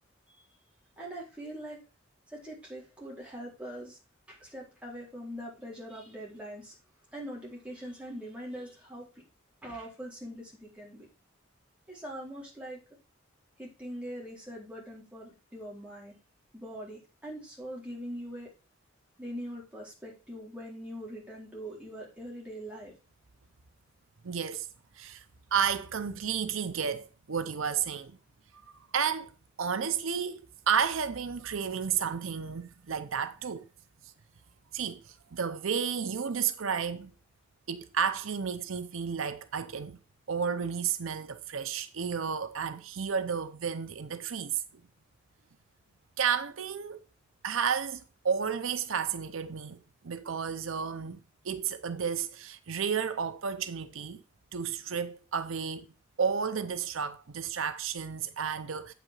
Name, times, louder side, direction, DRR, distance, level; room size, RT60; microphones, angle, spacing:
voice 1, 1.0-1.8 2.3-4.0 4.3-6.7 7.1-9.2 9.6-11.1 11.9-12.8 13.6-16.1 16.5-18.5 19.2-22.9, equal, 5° right, 4.3 m, -42 dB
voice 2, 24.2-24.7 25.0-25.2 25.5-28.2 28.9-29.3 29.6-30.4 30.7-33.6 34.7-37.1 37.7-40.0 40.3-44.6 46.2-47.0 47.4-54.2 54.5-55.9 56.2-58.9, right 7 dB, 80° right, 0.7 m, -32 dB
8.4 x 6.1 x 5.4 m
head